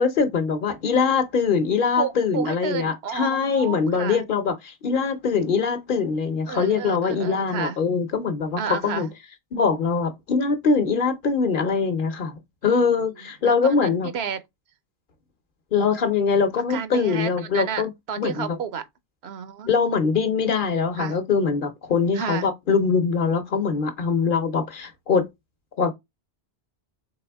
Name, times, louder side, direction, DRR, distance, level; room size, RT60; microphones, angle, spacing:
voice 1, 0.0-9.1 9.5-14.1 15.7-17.9 18.2-18.5 19.7-25.3 25.8-25.9, left 5 dB, 55° left, 0.9 m, -23 dB
voice 2, 2.0-4.2 6.5-7.8 8.6-9.1 12.7-12.8 13.2-14.4 16.7-17.8 18.1-18.8 19.2-19.7 21.0-21.2 22.1-22.5, right 7 dB, 75° right, 0.9 m, -31 dB
4.1 x 3.4 x 3.4 m
omnidirectional pair, 1.1 m